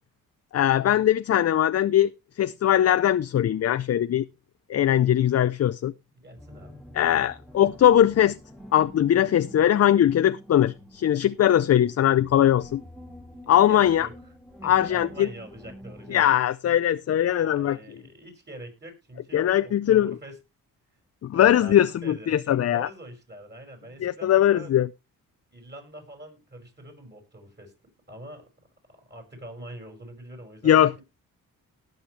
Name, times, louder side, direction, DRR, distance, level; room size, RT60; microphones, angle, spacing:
voice 1, 0.5-2.1 2.4-4.3 4.7-5.9 6.9-8.4 8.7-12.8 13.5-14.1 14.6-15.3 16.1-17.8 19.3-20.1 21.2-22.9 24.0-24.9 30.6-31.0, left 11 dB, 45° left, 0.5 m, -20 dB
voice 2, 6.1-6.8 13.4-14.1 14.6-16.3 17.3-20.4 21.3-24.7 25.5-27.7 28.1-28.5 29.1-31.0, right 1 dB, 30° right, 6.0 m, -44 dB
sound 1, 6.4-16.3, equal, ahead, 2.1 m, -47 dB
18.5 x 6.7 x 3.2 m
cardioid pair, 85°, 35 cm